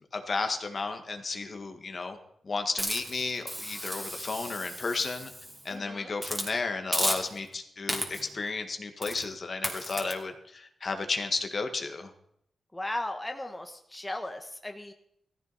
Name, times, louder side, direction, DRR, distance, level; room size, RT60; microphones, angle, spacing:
voice 1, 0.1-2.2 2.4-5.3 5.7-12.1, left 4 dB, 45° left, 6 dB, 1.8 m, -33 dB
Hiss, 2.8-5.7 6.2-6.5 6.9-7.5 7.9-8.4 9.0-9.3 9.6-10.1, equal, 5° right, 2.6 m, -34 dB
voice 2, 5.7-6.1 12.7-14.9, left 1 dB, 10° left, 4 dB, 1.4 m, -36 dB
16.0 x 14.5 x 4.2 m, 0.73 s
cardioid pair, 80°, 0 cm